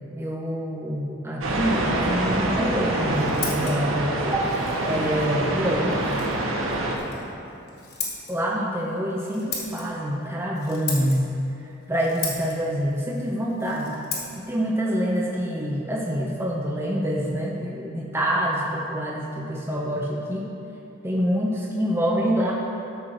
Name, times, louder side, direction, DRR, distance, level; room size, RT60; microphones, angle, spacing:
voice 1, 0.0-4.5 4.9-6.3 8.3-11.3 11.6-14.0 14.5-20.4 21.0-22.5, equal, 10° right, -4 dB, 0.8 m, -26 dB
sound 1, 1.4-7.0, right 1 dB, 90° right, 1.3 m, -26 dB
Scissors, 2.8-16.4, left 4 dB, 50° left, 1.7 m, -38 dB
11.5 x 4.6 x 6.5 m, 2.8 s
head